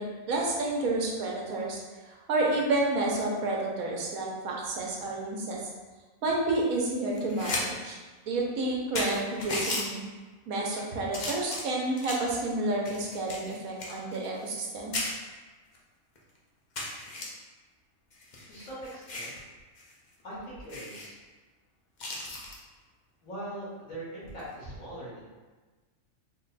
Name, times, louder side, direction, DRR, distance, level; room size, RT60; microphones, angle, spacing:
voice 1, 0.0-5.6 6.2-8.0 8.3-10.0 10.5-14.9, right 2 dB, 85° right, -2 dB, 1.2 m, -30 dB
sound 1, 7.1-7.6 8.0-8.1 8.6-8.7 8.9-9.8 10.5-10.8 11.1-12.3 12.8-14.7 14.9-15.1 15.7-15.8 16.1-16.2 16.7-17.2 18.1-19.4 19.8-19.9 20.2-20.3 20.7-21.1 22.0-22.6 24.3-24.5, left 2 dB, 50° left, 0.6 m, -35 dB
voice 2, 18.5-19.4 20.2-21.2 23.2-25.2, right 1 dB, 75° left, -9 dB, 1.8 m, -41 dB
3.8 x 2.2 x 3.9 m, 1.3 s
omnidirectional pair, 1.4 m